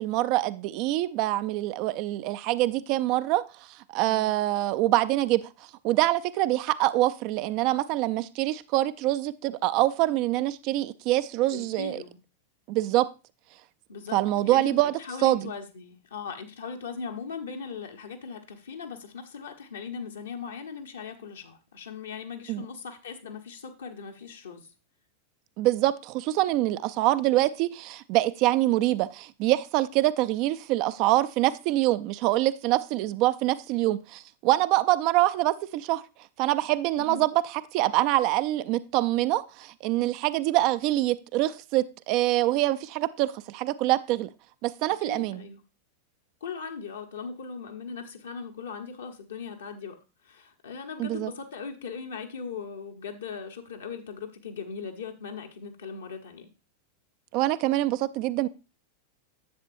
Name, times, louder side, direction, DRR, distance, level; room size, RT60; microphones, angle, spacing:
voice 1, 0.0-3.4 3.7-5.5 5.8-12.0 12.7-13.1 14.1-14.9 15.2-15.5 22.5-22.6 25.6-36.0 36.4-37.3 37.7-44.3 44.6-45.4 51.0-51.3 57.3-58.5, right 16 dB, 45° right, 0.4 m, -25 dB
voice 2, 11.5-12.2 13.9-14.2 14.4-24.7 37.0-37.2 45.0-45.6 46.4-50.0 50.2-56.5, left 6 dB, 70° left, 1.1 m, -39 dB
10.5 x 7.4 x 2.6 m
figure-of-eight pair, 90°, 0 cm